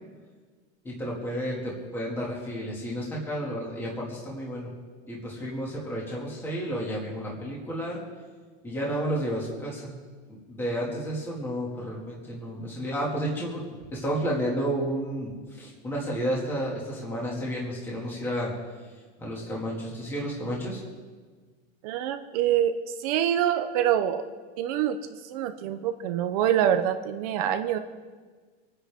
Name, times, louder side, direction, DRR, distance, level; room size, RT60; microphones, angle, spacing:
voice 1, 0.8-4.7 5.1-8.0 8.6-9.9 10.3-13.6 13.9-18.5 19.2-20.8, equal, 5° left, -4 dB, 2.1 m, -31 dB
voice 2, 21.8-24.2 24.6-27.8, right 10 dB, 35° right, 8 dB, 0.6 m, -26 dB
26.5 x 10.0 x 3.5 m, 1.5 s
supercardioid pair, 175°, 34 cm